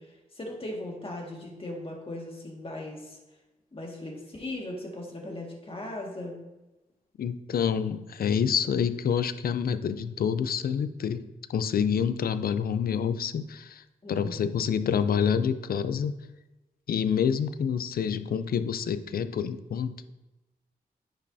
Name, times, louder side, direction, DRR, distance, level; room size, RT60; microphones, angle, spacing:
voice 1, 0.0-3.2 3.7-6.4 14.0-14.6, left 1 dB, 35° left, -1 dB, 1.8 m, -38 dB
voice 2, 7.2-11.2 11.5-16.1 16.9-20.1, left 7 dB, 75° left, 12 dB, 0.4 m, -27 dB
9.9 x 5.4 x 2.7 m, 1.0 s
cardioid pair, 75°, 16 cm